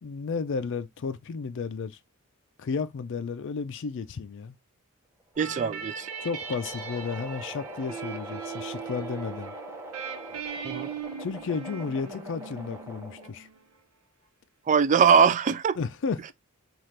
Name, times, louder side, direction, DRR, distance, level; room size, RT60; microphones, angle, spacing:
voice 1, 0.0-2.0 2.6-4.5 6.2-9.5 11.2-13.5 15.8-16.3, left 5 dB, 55° left, 0.4 m, -33 dB
sound 1, 5.2-13.5, equal, 10° right, 0.8 m, -43 dB
sound 2, 5.3-13.8, right 6 dB, 70° right, 0.9 m, -40 dB
voice 2, 5.4-6.1 10.6-10.9 14.7-15.8, right 6 dB, 35° right, 0.3 m, -21 dB
5.6 x 2.4 x 3.1 m
head